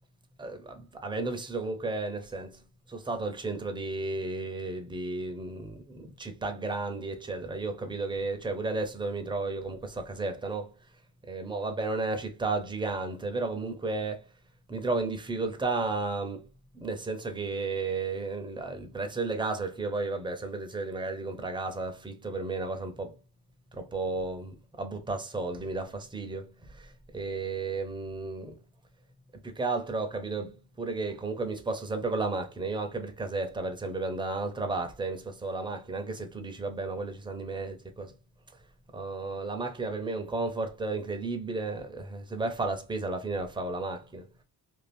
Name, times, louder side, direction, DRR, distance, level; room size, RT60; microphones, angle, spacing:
voice 1, 0.4-2.6 2.9-10.7 11.2-14.2 14.7-16.5 16.7-23.1 23.7-28.6 29.4-38.1 38.9-44.3, right 3 dB, 15° right, 0.6 m, -33 dB
2.6 x 2.4 x 3.3 m
cardioid pair, 130°, 38 cm